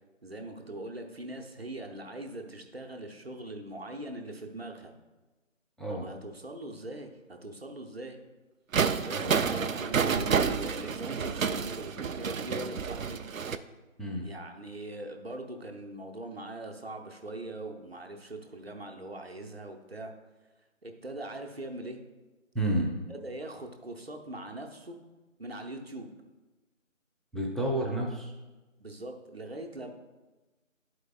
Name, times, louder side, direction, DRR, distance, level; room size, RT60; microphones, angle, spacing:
voice 1, 0.2-4.9 5.9-8.2 9.0-13.2 14.2-20.1 20.8-22.0 23.1-25.0 25.4-26.1 28.8-29.9, right 1 dB, 50° right, 3 dB, 0.8 m, -41 dB
sound 1, 8.7-13.6, right 6 dB, 80° right, 0.5 m, -29 dB
voice 2, 22.5-22.9 27.3-28.3, right 1 dB, ahead, -2 dB, 0.5 m, -30 dB
11.5 x 4.6 x 2.3 m, 1.2 s
figure-of-eight pair, 165°, 40 cm